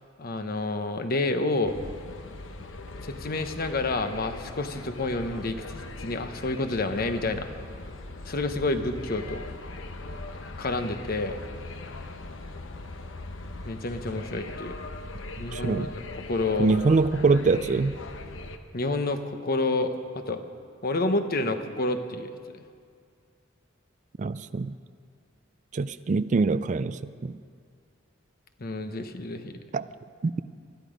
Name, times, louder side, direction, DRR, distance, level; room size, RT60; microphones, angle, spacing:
voice 1, 0.2-1.8 3.0-7.5 8.3-9.4 10.6-11.4 13.6-14.7 15.4-16.8 18.7-20.4 20.8-22.6 28.6-29.6, left 2 dB, 50° left, 8 dB, 1.0 m, -29 dB
sound 1, 1.7-18.6, left 2 dB, 80° left, 1.0 m, -40 dB
voice 2, 15.5-15.9 16.6-18.0 24.2-24.8 25.7-27.4 29.7-29.9 30.2-30.4, right 4 dB, 40° right, 14 dB, 0.4 m, -24 dB
19.5 x 13.0 x 5.2 m, 2.2 s
head